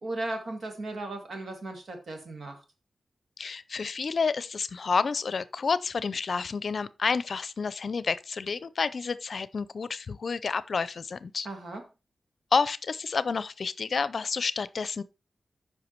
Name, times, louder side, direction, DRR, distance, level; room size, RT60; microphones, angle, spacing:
voice 1, 0.0-2.6 11.4-11.8, right 2 dB, 75° right, 2.6 m, -36 dB
voice 2, 3.4-11.5 12.5-15.0, left 5 dB, 65° left, 0.5 m, -29 dB
8.2 x 5.7 x 4.6 m
wide cardioid pair, 80°, 0 cm